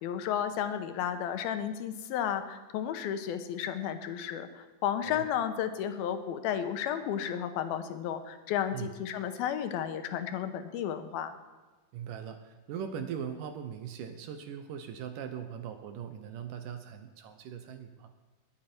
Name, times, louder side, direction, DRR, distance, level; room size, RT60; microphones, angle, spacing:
voice 1, 0.0-11.4, left 9 dB, 80° left, 8 dB, 2.7 m, -33 dB
voice 2, 11.9-18.1, right 8 dB, 75° right, 8 dB, 2.2 m, -40 dB
21.5 x 8.9 x 4.4 m, 1.2 s
omnidirectional pair, 4.3 m